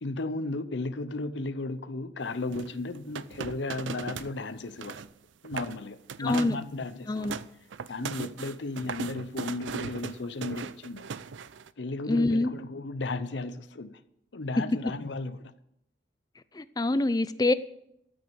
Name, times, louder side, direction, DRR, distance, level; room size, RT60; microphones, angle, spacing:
voice 1, 0.0-5.0 5.4-7.3 7.9-11.1 11.8-14.0 14.3-15.5, left 2 dB, 75° left, 0.7 m, -34 dB
sound 1, 2.5-4.3 4.6-5.1 5.4-5.8 6.1-6.6 7.0-11.7, right 6 dB, 90° right, 0.5 m, -38 dB
voice 2, 6.2-6.6 7.1-7.4 12.1-12.5 16.5-17.5, left 2 dB, 20° left, 0.4 m, -25 dB
13.5 x 6.3 x 7.8 m
head